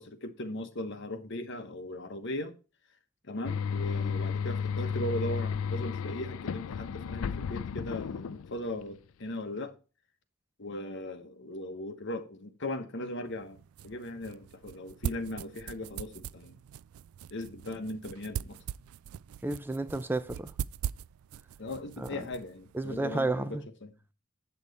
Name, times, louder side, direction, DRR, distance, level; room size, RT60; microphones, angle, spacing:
voice 1, 0.0-2.5 3.2-9.7 10.6-13.6 13.8-16.5 17.3-18.6 21.6-23.9, left 1 dB, 60° left, 1.2 m, -38 dB
sound 1, 3.4-8.8, left 6 dB, 75° left, 0.4 m, -33 dB
sound 2, 13.3-23.2, right 9 dB, 90° right, 0.3 m, -41 dB
voice 2, 19.4-20.5 22.0-22.2 22.7-23.6, right 2 dB, 10° right, 0.4 m, -32 dB
7.9 x 7.1 x 4.1 m
head